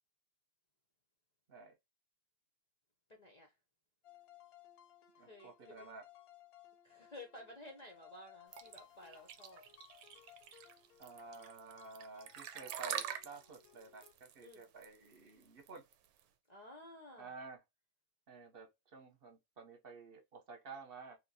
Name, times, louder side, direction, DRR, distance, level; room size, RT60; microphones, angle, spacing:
voice 1, 3.1-3.6 5.2-5.9 6.8-9.6 14.4-14.6 16.5-17.3, left 1 dB, 55° left, 0.4 m, -54 dB
sound 1, 4.0-14.1, left 12 dB, 85° left, 1.1 m, -62 dB
voice 2, 5.2-6.0 11.0-15.8 17.2-17.6 18.3-21.2, right 4 dB, 45° right, 0.9 m, -52 dB
sound 2, 8.5-16.2, right 9 dB, 85° right, 1.0 m, -45 dB
2.9 x 2.8 x 2.7 m
omnidirectional pair, 1.5 m